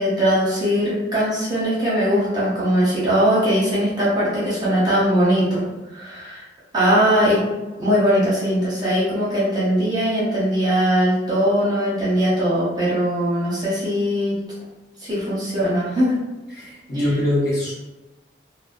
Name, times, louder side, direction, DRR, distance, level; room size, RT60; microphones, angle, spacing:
voice 1, 0.0-5.6 5.9-6.4 6.7-7.4 7.8-14.3 15.0-16.1 16.9-17.1, equal, 20° right, -9 dB, 0.7 m, -20 dB
voice 2, 16.5-17.7, left 1 dB, 55° left, -8 dB, 1.0 m, -23 dB
2.6 x 2.0 x 2.4 m, 1.1 s
head